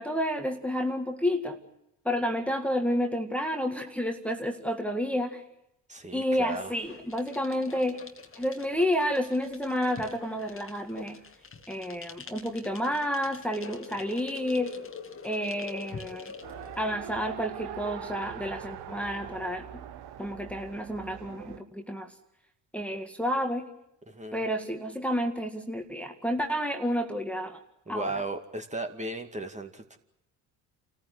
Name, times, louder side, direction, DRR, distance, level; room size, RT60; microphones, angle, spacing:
voice 1, 0.0-1.6 2.1-5.4 6.1-8.0 8.4-11.2 11.7-14.8 15.2-16.3 16.8-19.8 20.2-22.1 22.7-23.7 24.3-27.6 27.9-28.1, equal, 5° left, 4 dB, 2.1 m, -30 dB
voice 2, 5.9-6.7 24.1-24.4 27.9-30.0, right 2 dB, 15° right, 5 dB, 2.2 m, -36 dB
sound 1, 6.6-16.9, left 5 dB, 30° left, 2.0 m, -45 dB
Race car auto racing, 16.4-21.6, right 9 dB, 60° right, 1.5 m, -42 dB
28.5 x 14.5 x 10.0 m, 0.86 s
hypercardioid pair, 60°, 44 cm